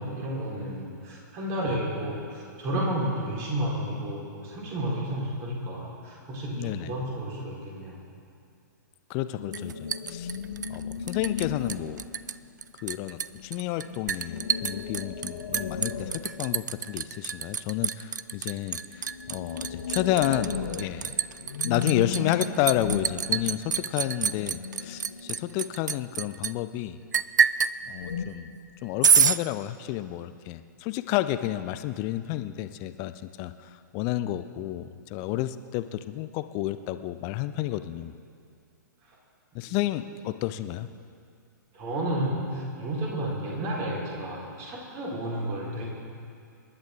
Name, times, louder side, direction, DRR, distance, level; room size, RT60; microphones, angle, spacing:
voice 1, 0.0-8.0 39.6-39.9 41.7-45.9, right 1 dB, 30° right, -4 dB, 4.2 m, -31 dB
voice 2, 6.6-6.9 9.1-10.3 10.7-12.0 12.8-21.2 21.6-27.0 27.9-28.5 28.8-33.5 33.9-34.8 35.1-38.1 39.5-40.9, left 14 dB, 30° left, 12 dB, 0.5 m, -31 dB
sound 1, 9.4-12.5 13.3-17.1 18.7-25.7 27.8-28.3, left 6 dB, 55° left, 1.3 m, -36 dB
Liquid, 9.5-11.4 11.7-12.3 12.6-26.5 27.1-27.8 29.0-29.4, right 7 dB, 65° right, 0.4 m, -27 dB
26.0 x 11.5 x 3.7 m, 2.3 s
figure-of-eight pair, 110°, 11 cm